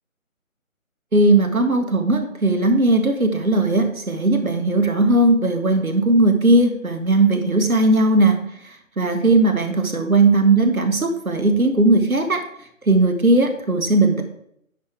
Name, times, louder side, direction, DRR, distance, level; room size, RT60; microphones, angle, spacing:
voice 1, 1.1-8.4 8.6-12.4 12.9-14.2, right 2 dB, 80° right, 6 dB, 1.7 m, -18 dB
10.0 x 4.9 x 4.7 m, 0.72 s
figure-of-eight pair, 150°, 42 cm